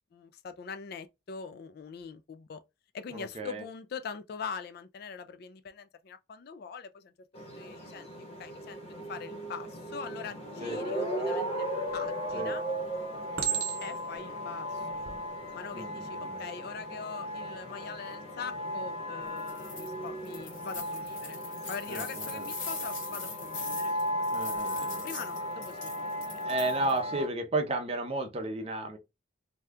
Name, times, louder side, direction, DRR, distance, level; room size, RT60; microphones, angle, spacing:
voice 1, 0.1-2.6 2.9-8.8 9.1-11.7 11.9-12.6 13.8-15.1 15.5-21.4 21.7-23.9 25.0-25.9, left 6 dB, 50° left, 0.3 m, -43 dB
voice 2, 3.1-3.6 10.6-10.8 12.3-12.6 13.5-13.7 15.7-16.4 21.9-22.5 24.3-25.1 26.2-29.0, right 2 dB, 30° right, 0.6 m, -34 dB
sound 1, 7.3-27.3, equal, 30° left, 0.9 m, -36 dB
Chink clink, 11.9-12.4 13.4-14.2 14.9-15.2, right 9 dB, 90° right, 0.8 m, -33 dB
sound 2, 19.4-19.9 20.3-27.0, left 4 dB, 80° left, 1.4 m, -42 dB
2.7 x 2.2 x 3.4 m
head